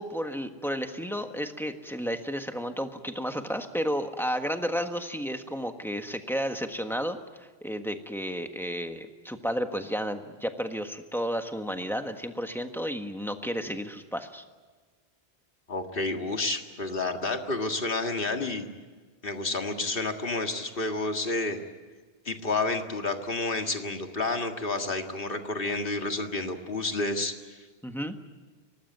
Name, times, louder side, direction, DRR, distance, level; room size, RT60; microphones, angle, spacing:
voice 1, 0.0-14.4 27.8-28.1, equal, ahead, 6 dB, 1.4 m, -32 dB
voice 2, 15.7-18.7 19.2-21.6 22.3-27.6, left 2 dB, 60° left, 5 dB, 2.1 m, -30 dB
24.5 x 19.0 x 9.4 m, 1.4 s
omnidirectional pair, 1.1 m